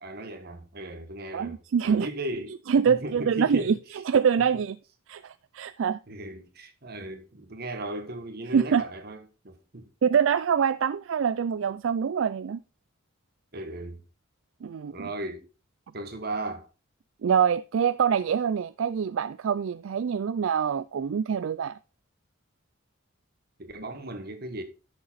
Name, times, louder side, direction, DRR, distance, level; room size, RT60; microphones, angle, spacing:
voice 1, 0.0-1.6 1.8-2.6 2.9-3.8 4.5-4.6 6.1-9.9 13.5-14.0 14.9-15.5 15.9-16.7 23.6-24.6, right 1 dB, 50° right, 1.5 m, -36 dB
voice 2, 1.3-2.1 2.7-3.7 4.1-4.8 5.1-6.0 8.5-8.8 10.0-12.6 14.6-15.1 17.2-21.8, right 7 dB, 70° right, 0.4 m, -25 dB
11.0 x 6.7 x 4.1 m
head